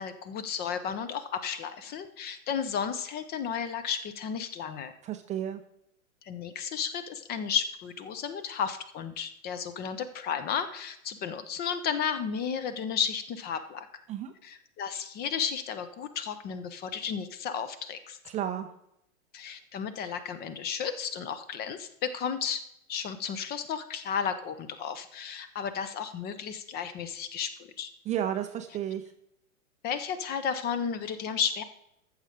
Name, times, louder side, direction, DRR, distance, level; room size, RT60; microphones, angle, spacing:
voice 1, 0.0-4.9 6.2-13.9 14.4-18.2 19.3-22.6 22.9-27.9 29.8-31.6, left 7 dB, 25° left, 12 dB, 0.8 m, -33 dB
voice 2, 5.0-5.6 14.1-14.3 18.2-18.7 28.1-29.0, right 10 dB, 15° right, 6 dB, 0.6 m, -32 dB
14.0 x 6.5 x 5.1 m, 0.77 s
hypercardioid pair, 110°, 42 cm